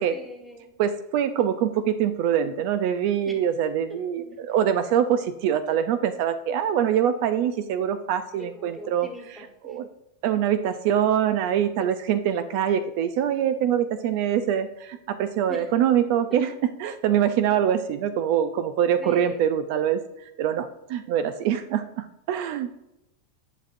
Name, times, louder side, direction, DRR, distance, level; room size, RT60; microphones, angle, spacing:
voice 1, 0.1-0.7 3.2-3.3 8.5-9.2 9.6-9.8 15.5-15.7 19.0-19.4, left 1 dB, 5° left, 0 dB, 1.4 m, -41 dB
voice 2, 0.8-9.9 10.2-22.7, right 9 dB, 60° right, 11 dB, 0.4 m, -24 dB
9.9 x 5.8 x 2.6 m, 0.88 s
supercardioid pair, 130°, 0 cm